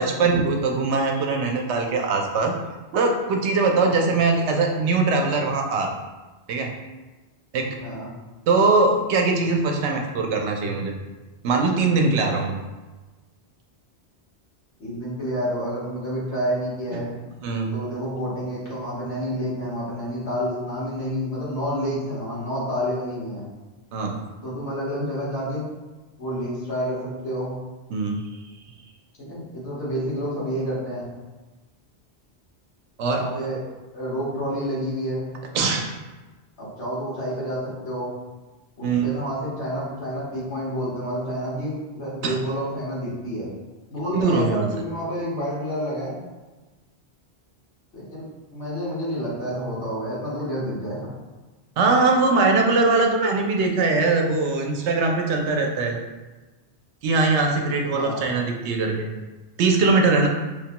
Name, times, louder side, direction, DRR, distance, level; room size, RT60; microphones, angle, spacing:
voice 1, 0.0-2.5 2.9-5.9 6.5-6.7 7.5-7.8 8.5-10.9 11.4-12.5 17.4-17.7 23.9-24.2 27.9-28.2 33.0-33.2 35.5-35.9 38.8-39.2 42.2-42.3 44.1-44.7 51.8-56.0 57.0-59.1 59.6-60.3, right 3 dB, 80° right, 2 dB, 0.8 m, -21 dB
voice 2, 7.8-8.1 14.8-17.2 17.7-23.5 24.4-25.7 26.2-27.5 29.2-31.1 33.1-33.6 33.9-35.4 36.6-38.1 38.8-43.5 43.9-46.2 47.9-51.1 57.9-58.2, equal, 80° left, -8 dB, 1.6 m, -29 dB
4.6 x 2.1 x 2.8 m, 1.2 s
omnidirectional pair, 1.1 m